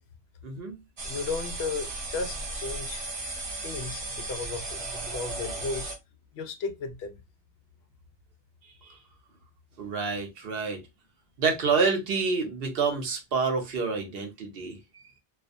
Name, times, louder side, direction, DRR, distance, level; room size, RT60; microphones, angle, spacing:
voice 1, 0.4-0.8 8.8-9.0 9.8-10.8 11.4-14.8, right 4 dB, 65° right, 0.9 m, -28 dB
voice 2, 1.0-3.0 3.6-5.9 6.3-7.2, left 4 dB, 80° left, 0.8 m, -35 dB
sound 1, 1.0-6.0, right 2 dB, 45° right, 0.5 m, -35 dB
2.3 x 2.1 x 2.5 m
omnidirectional pair, 1.1 m